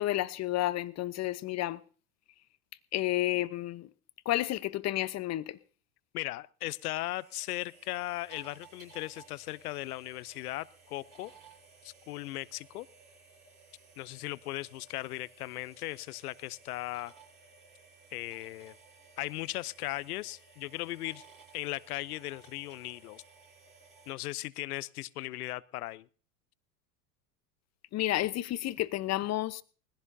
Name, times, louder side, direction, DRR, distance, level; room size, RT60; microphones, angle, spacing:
voice 1, 0.0-1.8 2.9-3.9 4.2-5.6 27.9-29.6, left 15 dB, 35° left, 0.8 m, -31 dB
voice 2, 6.1-11.3 11.8-12.9 14.0-17.1 18.1-18.7 19.2-21.2 21.5-23.2 24.1-26.1, left 17 dB, 70° left, 0.7 m, -38 dB
sound 1, 6.7-24.1, right 4 dB, 40° right, 7.9 m, -58 dB
20.0 x 15.5 x 2.7 m
hypercardioid pair, 85°, 46 cm